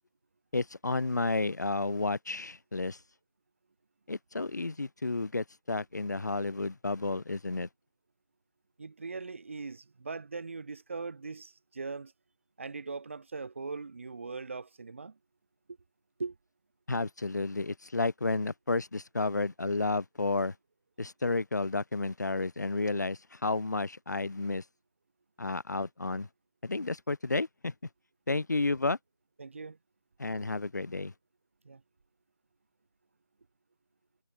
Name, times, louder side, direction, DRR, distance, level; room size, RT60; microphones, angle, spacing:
voice 1, 0.5-3.0 4.1-7.7 16.9-20.6 21.0-24.6 25.4-26.3 26.6-27.7 28.3-29.0 30.2-31.1, left 3 dB, 40° left, 5.6 m, -31 dB
voice 2, 8.8-12.1 12.6-15.2 16.2-16.4 28.3-28.4 29.4-29.8 31.6-31.8, right 4 dB, 30° right, 4.4 m, -40 dB
figure-of-eight pair, 175°, 14 cm